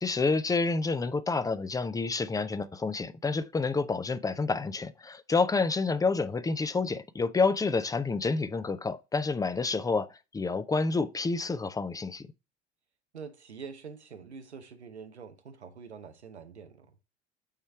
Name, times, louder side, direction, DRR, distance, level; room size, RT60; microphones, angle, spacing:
voice 1, 0.0-10.1 10.3-12.3, left 4 dB, 10° left, 0.6 m, -28 dB
voice 2, 13.1-16.9, right 5 dB, 80° right, 1.0 m, -45 dB
8.9 x 3.2 x 4.7 m
figure-of-eight pair, 65°, 33 cm